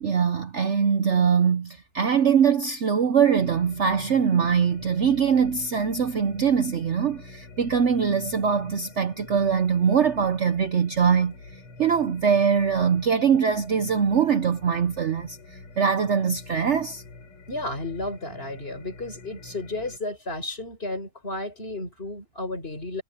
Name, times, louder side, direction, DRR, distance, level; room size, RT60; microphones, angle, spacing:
voice 1, 0.0-11.3 11.8-17.0, right 7 dB, 75° right, 0.6 m, -22 dB
sound 1, 3.4-20.0, left 3 dB, 85° left, 5.5 m, -46 dB
voice 2, 17.5-23.0, left 2 dB, 25° left, 4.7 m, -33 dB
omnidirectional pair, 2.4 m